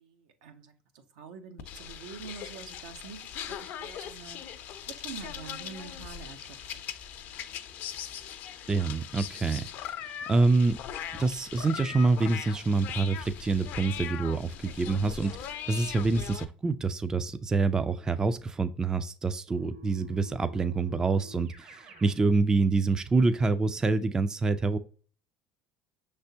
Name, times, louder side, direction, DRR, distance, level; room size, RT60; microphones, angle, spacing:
voice 1, 0.0-4.4 4.9-6.9, right 6 dB, 85° right, 0.8 m, -46 dB
sound 1, 1.6-16.4, left 9 dB, 60° left, 0.5 m, -40 dB
voice 2, 8.7-10.8 11.2-24.8, right 3 dB, 20° right, 0.3 m, -26 dB
Keyboard (musical), 19.5-22.2, left 3 dB, 70° right, 1.4 m, -50 dB
5.8 x 3.3 x 2.7 m
supercardioid pair, 100°, 4 cm